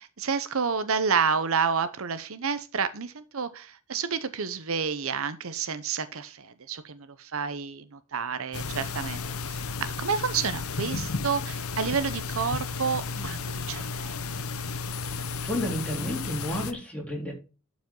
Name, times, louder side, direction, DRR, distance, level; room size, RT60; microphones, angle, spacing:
voice 1, 0.0-14.2, right 6 dB, 70° right, 12 dB, 0.8 m, -30 dB
sound 1, 8.5-16.7, left 4 dB, 75° left, 0.9 m, -33 dB
voice 2, 15.1-17.3, equal, 5° left, -1 dB, 3.8 m, -32 dB
12.0 x 5.2 x 3.8 m, 0.33 s
head